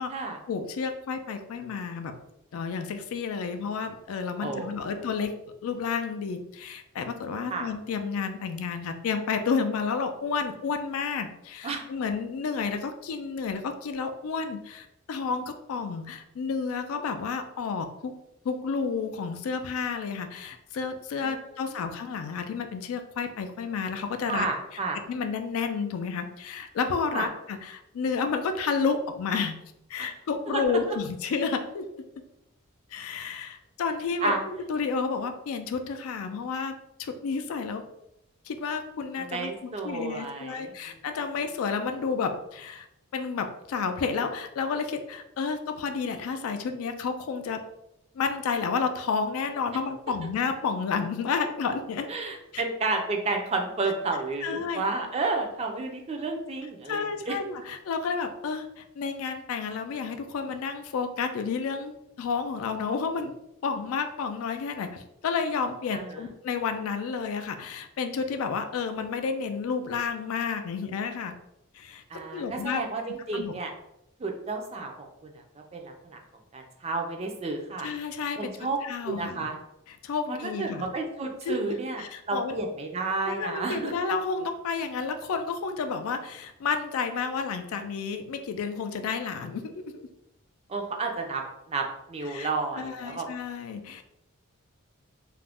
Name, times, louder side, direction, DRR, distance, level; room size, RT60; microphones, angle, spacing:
voice 1, 0.5-2.1 2.5-18.2 18.4-24.5 25.1-29.6 29.9-31.9 32.9-34.3 34.7-37.9 38.5-42.9 43.1-47.6 48.1-52.1 52.5-52.6 54.4-54.8 56.9-63.3 63.6-71.3 71.7-72.0 72.3-72.8 73.3-73.5 77.8-78.5 78.8-79.5 79.9-80.9 81.5-82.6 83.2-90.1 92.3-92.5 92.8-94.0, left 5 dB, 75° left, 7 dB, 0.3 m, -31 dB
voice 2, 4.4-5.1 7.5-7.7 11.6-11.8 21.1-21.5 24.3-25.0 27.1-27.3 30.0-30.1 30.5-30.8 34.2-34.4 39.2-41.0 52.1-57.3 65.9-66.3 72.1-73.7 74.2-75.4 75.7-76.2 76.5-77.9 78.4-78.8 79.0-79.6 80.3-83.9 90.7-93.3, right 3 dB, 30° right, 3 dB, 0.3 m, -31 dB
2.4 x 2.0 x 3.4 m, 0.82 s
head